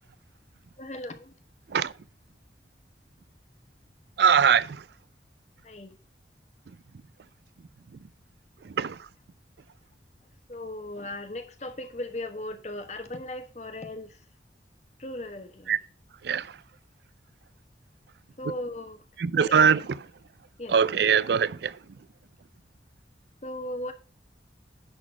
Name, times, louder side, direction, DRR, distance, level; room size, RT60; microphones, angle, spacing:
voice 1, 0.8-1.3 5.6-5.9 10.5-14.2 15.0-15.8 18.4-19.0 19.3-19.6 20.6-20.7 23.4-23.9, left 1 dB, 40° left, 1.2 m, -37 dB
voice 2, 4.2-4.8 8.6-9.1 15.7-15.8 16.2-16.6 19.2-20.1 20.7-21.8, right 7 dB, 70° right, 0.4 m, -22 dB
10.5 x 4.1 x 6.1 m
head